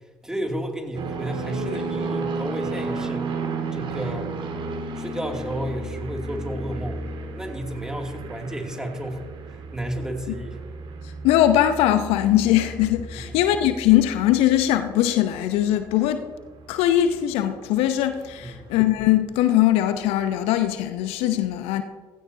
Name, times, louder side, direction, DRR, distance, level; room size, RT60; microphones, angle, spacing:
voice 1, 0.2-3.3 3.7-4.3 4.9-7.1 7.3-9.2 9.7-10.6 13.1-13.4 18.4-18.7, right 1 dB, 5° right, 2.6 m, -32 dB
sound 1, 1.0-18.0 18.2-18.8, right 3 dB, 50° right, 2.1 m, -33 dB
voice 2, 11.2-16.2 16.7-21.8, left 12 dB, 65° left, 0.7 m, -21 dB
17.5 x 16.0 x 2.8 m
figure-of-eight pair, 50°, 11 cm